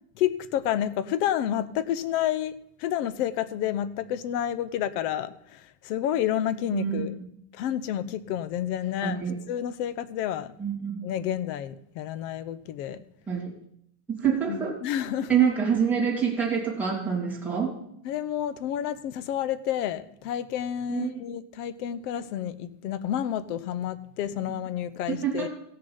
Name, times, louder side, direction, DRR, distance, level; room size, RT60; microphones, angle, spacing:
voice 1, 0.2-7.1 7.5-9.2 9.5-10.5 11.0-13.0 14.5-15.3 18.0-25.5, left 10 dB, 85° left, 15 dB, 0.9 m, -30 dB
voice 2, 6.7-7.4 9.0-9.3 10.6-11.0 13.3-13.6 14.1-14.8 15.3-17.7 20.9-21.2 25.1-25.5, right 7 dB, 5° right, -5 dB, 2.5 m, -26 dB
16.0 x 6.6 x 5.6 m, 0.73 s
cardioid pair, 175°, 46 cm